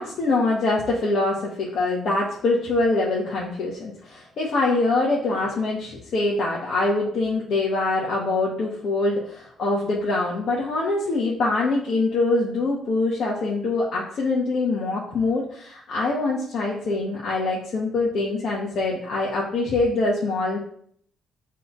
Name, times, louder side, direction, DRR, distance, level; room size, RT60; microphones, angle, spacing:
voice 1, 0.0-20.6, left 2 dB, 60° left, -4 dB, 1.5 m, -24 dB
7.5 x 3.4 x 4.0 m, 0.63 s
cardioid pair, 90°, 0 cm